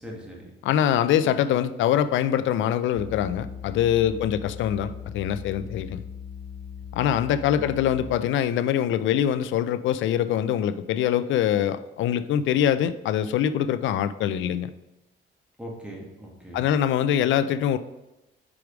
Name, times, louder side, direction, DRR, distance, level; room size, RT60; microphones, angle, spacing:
voice 1, 0.0-0.5 4.0-4.2 5.6-5.7 7.6-7.7 15.6-16.7, right 1 dB, 5° right, -2 dB, 1.7 m, -40 dB
voice 2, 0.6-6.0 6.9-14.7 16.5-17.8, left 10 dB, 75° left, 14 dB, 0.4 m, -24 dB
sound 1, 3.0-8.3, left 7 dB, 35° left, 2.4 m, -39 dB
4.9 x 4.7 x 5.0 m, 0.98 s
cardioid pair, 90°, 20 cm